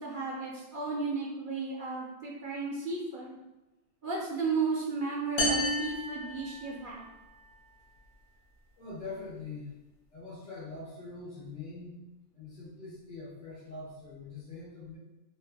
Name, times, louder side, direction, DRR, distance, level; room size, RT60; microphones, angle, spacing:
voice 1, 0.0-3.4 4.0-7.1, right 4 dB, 60° right, -4 dB, 0.6 m, -34 dB
sound 1, 5.4-7.1, left 1 dB, 60° left, 1.0 m, -31 dB
voice 2, 8.8-9.8 10.1-12.0 12.3-15.0, left 3 dB, 90° left, -12 dB, 1.6 m, -43 dB
3.9 x 2.4 x 2.2 m, 1.1 s
omnidirectional pair, 1.3 m